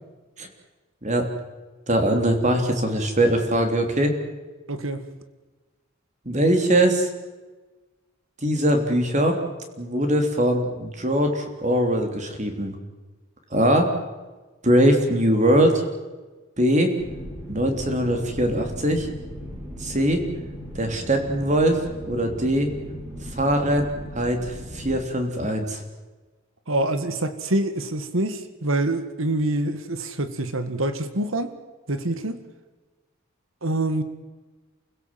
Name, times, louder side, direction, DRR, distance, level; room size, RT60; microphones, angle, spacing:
voice 1, 1.9-4.1 6.2-7.1 8.4-9.4 9.8-12.7 13.5-13.9 14.6-15.8 16.6-16.9 17.5-19.1 19.8-20.2 20.7-22.7 23.3-25.8, right 1 dB, 35° right, 4 dB, 3.4 m, -21 dB
voice 2, 4.7-5.0 26.7-31.5 31.9-32.4 33.6-34.0, right 1 dB, 80° right, 10 dB, 1.8 m, -25 dB
sound 1, 17.0-25.0, equal, 15° right, 6.2 m, -37 dB
29.5 x 16.5 x 7.6 m, 1.2 s
head